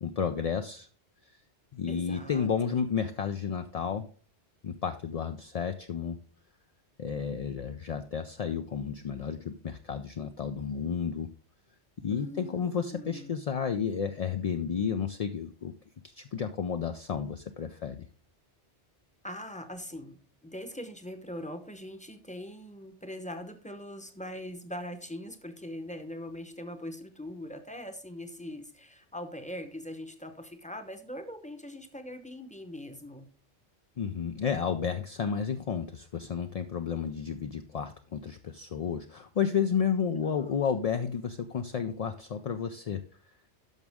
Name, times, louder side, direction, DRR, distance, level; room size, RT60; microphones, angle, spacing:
voice 1, 0.0-0.9 1.7-4.1 4.6-6.2 7.0-11.3 12.0-15.7 16.1-18.1 34.0-43.0, left 7 dB, 55° left, 7 dB, 0.4 m, -32 dB
voice 2, 1.9-2.8 12.1-13.4 19.2-33.3 40.1-40.6, left 1 dB, 5° left, 8 dB, 0.7 m, -42 dB
10.5 x 6.2 x 3.5 m, 0.41 s
omnidirectional pair, 1.1 m